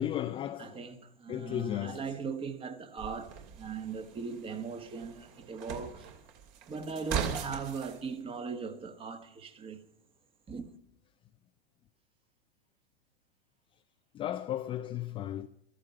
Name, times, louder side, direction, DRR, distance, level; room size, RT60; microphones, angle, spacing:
voice 1, 0.0-0.9 1.3-2.2 14.1-15.5, left 12 dB, 15° left, 0.5 m, -35 dB
voice 2, 0.6-6.1 6.7-9.8 10.5-10.7, right 5 dB, 20° right, 1.5 m, -39 dB
sound 1, 3.0-8.0, right 7 dB, 45° right, 2.7 m, -39 dB
14.5 x 13.5 x 5.5 m
figure-of-eight pair, 100°, 31 cm